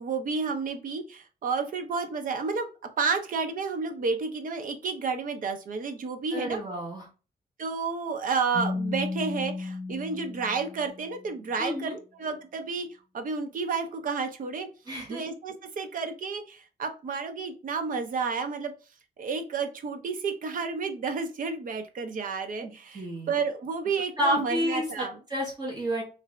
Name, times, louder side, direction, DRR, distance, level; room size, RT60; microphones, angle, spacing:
voice 1, 0.0-2.7 3.0-6.6 7.6-12.9 13.1-14.7 15.1-18.7 19.2-25.2, right 5 dB, 55° right, 7 dB, 0.6 m, -31 dB
voice 2, 6.3-7.0 11.6-12.0 14.9-15.2 22.6-23.3 24.2-26.0, equal, 25° right, -3 dB, 1.2 m, -30 dB
Keyboard (musical), 8.5-11.3, left 3 dB, 40° left, 0.7 m, -34 dB
3.2 x 2.6 x 3.1 m, 0.34 s
wide cardioid pair, 155°, 17 cm